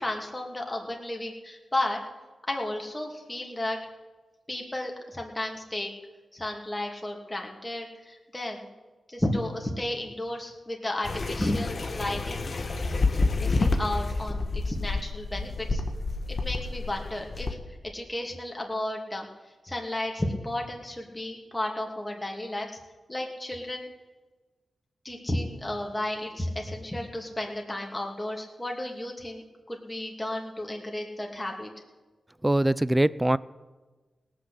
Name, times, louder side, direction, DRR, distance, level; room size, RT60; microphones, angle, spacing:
voice 1, 0.0-2.0 2.5-3.8 4.5-5.9 6.3-8.7 9.1-12.5 13.2-15.8 16.3-17.6 17.9-19.3 19.6-22.7 23.1-23.9 25.0-31.7, left 1 dB, 15° left, 0 dB, 2.8 m, -33 dB
sound 1, 11.0-17.5, left 3 dB, 55° left, 1.4 m, -29 dB
voice 2, 32.4-33.4, right 1 dB, 15° right, 19 dB, 0.5 m, -22 dB
18.0 x 6.3 x 8.4 m, 1.3 s
cardioid pair, 45°, 0 cm